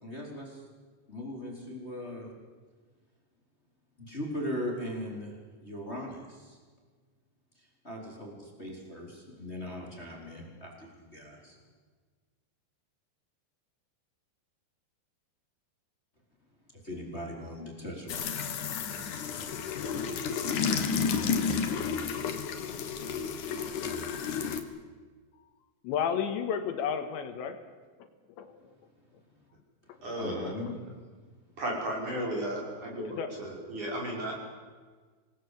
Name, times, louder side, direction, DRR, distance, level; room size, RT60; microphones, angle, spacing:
voice 1, 0.0-0.6 1.1-2.3 4.0-5.4 5.6-6.6 7.6-11.6 16.7-18.3 30.2-30.8, left 1 dB, 15° left, 0 dB, 4.2 m, -39 dB
sound 1, 18.1-24.6, left 6 dB, 55° left, 2.5 m, -31 dB
voice 2, 25.8-27.6 28.4-28.6 33.0-33.3, left 7 dB, 75° left, 7 dB, 3.9 m, -32 dB
voice 3, 30.0-30.5 31.6-34.4, right 1 dB, 40° right, -1 dB, 7.2 m, -34 dB
26.5 x 19.5 x 8.4 m, 1.5 s
omnidirectional pair, 5.3 m